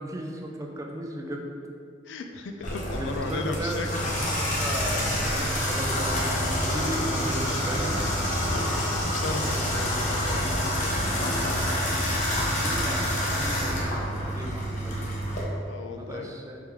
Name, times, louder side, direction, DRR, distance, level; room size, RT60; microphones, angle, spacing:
voice 1, 0.0-1.5 2.9-3.8 4.3-6.3 6.6-8.0 12.5-15.1 15.9-16.6, right 1 dB, 15° right, 1 dB, 0.4 m, -35 dB
voice 2, 2.1-4.1 8.3-10.9 15.7-16.4, left 3 dB, 75° left, 5 dB, 0.4 m, -36 dB
Water tap faucet / Bathtub (filling or washing), 2.6-15.4, equal, 40° left, 0.8 m, -27 dB
4.6 x 3.3 x 3.5 m, 2.3 s
head